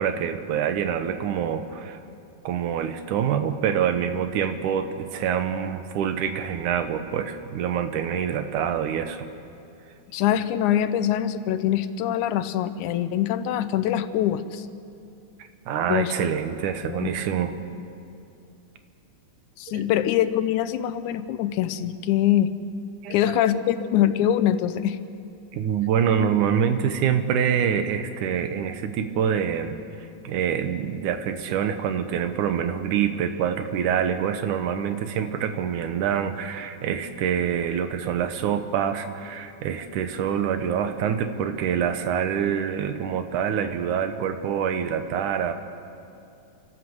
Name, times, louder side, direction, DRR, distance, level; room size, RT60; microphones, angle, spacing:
voice 1, 0.0-2.0 2.4-9.3 15.4-17.5 19.7-19.8 23.0-23.6 25.5-29.8 30.2-45.5, right 8 dB, 90° right, 9 dB, 2.5 m, -26 dB
voice 2, 10.1-14.7 15.9-16.1 16.9-17.1 19.6-22.5 23.1-25.0, left 11 dB, 85° left, 12 dB, 2.2 m, -23 dB
27.0 x 12.5 x 7.9 m, 2.6 s
omnidirectional pair, 3.4 m